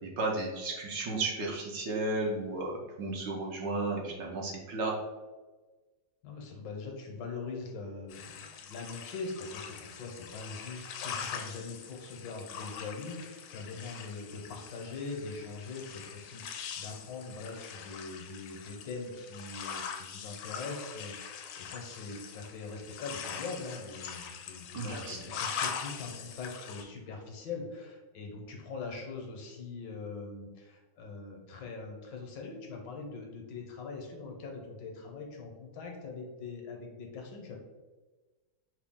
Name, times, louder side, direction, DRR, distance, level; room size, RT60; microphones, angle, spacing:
voice 1, 0.0-5.0 24.7-25.2, right 2 dB, 65° right, -2 dB, 1.4 m, -33 dB
voice 2, 6.2-37.6, left 4 dB, 65° left, 1 dB, 1.4 m, -42 dB
sound 1, 8.1-26.8, left 7 dB, 85° left, 1.4 m, -42 dB
5.7 x 2.3 x 3.5 m, 1.2 s
omnidirectional pair, 2.2 m